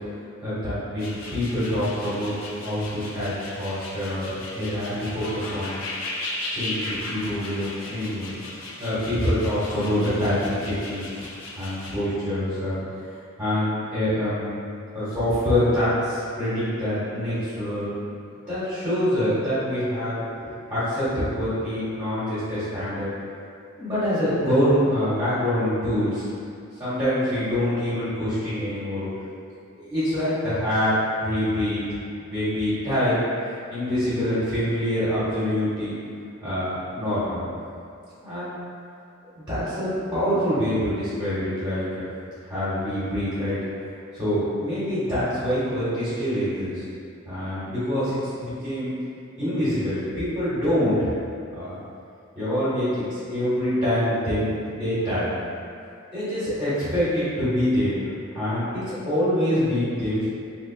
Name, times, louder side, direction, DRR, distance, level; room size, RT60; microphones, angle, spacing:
voice 1, 0.4-2.4 2.6-5.8 6.5-8.3 8.8-11.0 11.6-12.8 13.4-14.6 14.9-17.9 18.5-23.1 23.8-26.2 26.8-29.0 29.8-31.8 32.3-33.2 33.7-35.9 36.4-37.4 38.2-38.6 39.3-42.0 42.5-43.6 44.1-46.8 47.2-48.9 49.4-51.1 51.5-51.7 52.3-55.3 56.1-58.0 58.3-60.3, equal, 15° right, -16 dB, 1.5 m, -25 dB
sound 1, 1.0-12.0, left 2 dB, 80° left, 0.5 m, -36 dB
3.5 x 2.5 x 3.4 m, 2.5 s
head